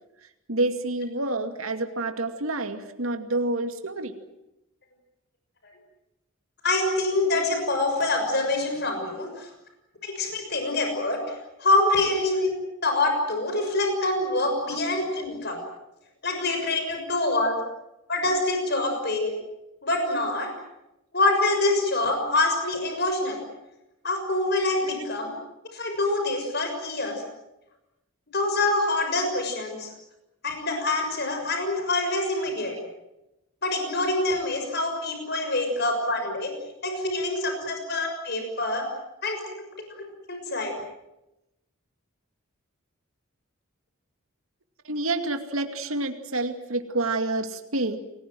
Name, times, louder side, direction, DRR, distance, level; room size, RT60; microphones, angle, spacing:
voice 1, 0.5-4.1 14.7-14.8 24.7-25.1 32.5-32.6 37.6-37.7 44.8-48.0, right 2 dB, 85° right, 6 dB, 2.4 m, -28 dB
voice 2, 6.6-9.5 10.0-11.2 11.6-12.5 12.8-15.6 16.2-17.6 18.1-19.3 19.8-20.5 21.1-23.4 24.0-25.3 25.7-27.2 28.3-29.9 30.4-32.7 33.6-36.5 36.8-38.8 39.2-39.4 40.3-40.7, left 2 dB, 50° left, 5 dB, 6.4 m, -25 dB
30.0 x 21.0 x 7.8 m, 0.91 s
head